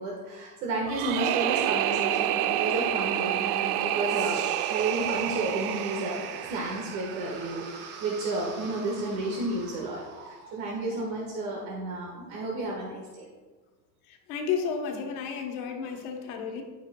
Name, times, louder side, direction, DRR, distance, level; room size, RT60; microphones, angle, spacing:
voice 1, 0.0-4.4 4.7-13.3, right 2 dB, 60° right, -2 dB, 1.6 m, -32 dB
sound 1, 0.9-7.8, right 12 dB, 75° right, 0.5 m, -29 dB
sound 2, 4.1-12.2, right 5 dB, 25° right, 0.5 m, -45 dB
voice 2, 14.1-16.6, left 6 dB, 65° left, 2 dB, 1.3 m, -32 dB
11.5 x 6.1 x 2.3 m, 1.3 s
supercardioid pair, 160°, 46 cm